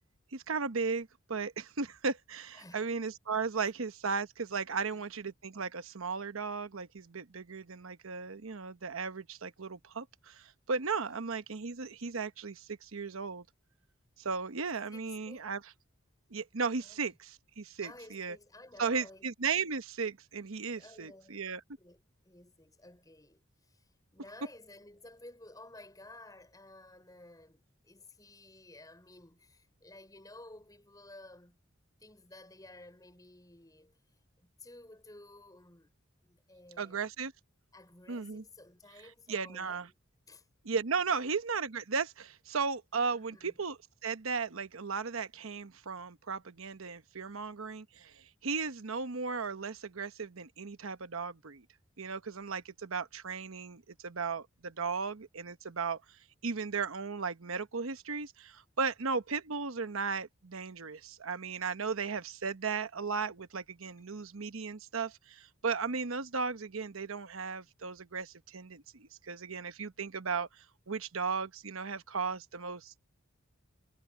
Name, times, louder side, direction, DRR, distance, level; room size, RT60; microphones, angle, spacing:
voice 1, 0.3-13.4 14.2-15.6 16.3-18.4 18.8-21.6 36.8-37.3 38.1-38.4 39.3-39.9 40.6-51.6 52.0-56.2 56.4-73.0, right 5 dB, 90° right, 1.0 m, -36 dB
voice 2, 2.5-2.9 4.8-5.0 11.0-11.2 14.9-15.5 16.8-17.0 17.8-19.2 20.7-21.4 21.8-31.6 32.0-36.0 36.2-37.0 37.7-39.9 40.3-40.5 41.1-41.3 43.1-43.6 63.8-64.3, left 2 dB, 20° left, 5.2 m, -54 dB
head